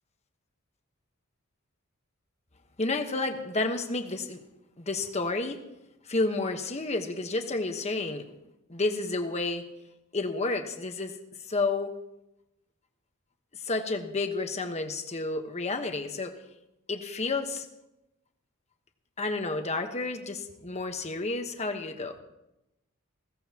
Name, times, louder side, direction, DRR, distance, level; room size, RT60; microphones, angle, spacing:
voice 1, 2.8-4.4 4.8-5.6 6.1-8.3 8.7-9.7 10.1-11.2 11.5-12.0 13.6-16.4 16.9-17.7 19.2-22.2, left 3 dB, 30° left, 5 dB, 1.2 m, -30 dB
21.0 x 16.5 x 3.0 m, 0.91 s
head